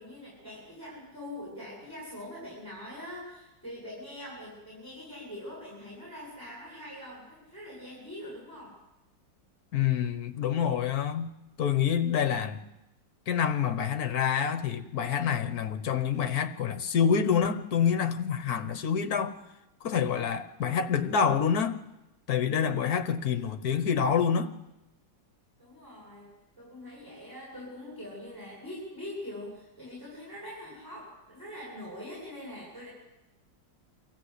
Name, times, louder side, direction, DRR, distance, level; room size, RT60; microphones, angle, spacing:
voice 1, 0.0-8.8 25.6-32.9, left 1 dB, 10° left, 7.9 m, -43 dB
voice 2, 9.7-11.3 11.6-12.7 13.3-19.4 19.8-21.8 22.3-24.5, left 7 dB, 55° left, 1.6 m, -27 dB
25.0 x 14.5 x 8.2 m
omnidirectional pair, 2.0 m